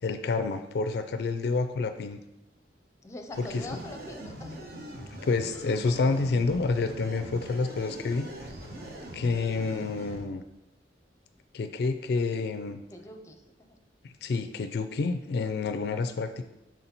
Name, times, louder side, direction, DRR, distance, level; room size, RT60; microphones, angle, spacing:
voice 1, 0.0-2.2 3.4-3.8 5.2-8.3 9.1-10.4 11.5-12.8 14.0-16.4, left 4 dB, 65° left, 9 dB, 0.4 m, -29 dB
voice 2, 3.0-4.7 12.9-13.8, left 2 dB, 15° left, 4 dB, 0.6 m, -43 dB
sound 1, 3.3-10.2, right 1 dB, 60° right, 1.0 m, -42 dB
6.1 x 4.0 x 4.3 m, 0.93 s
head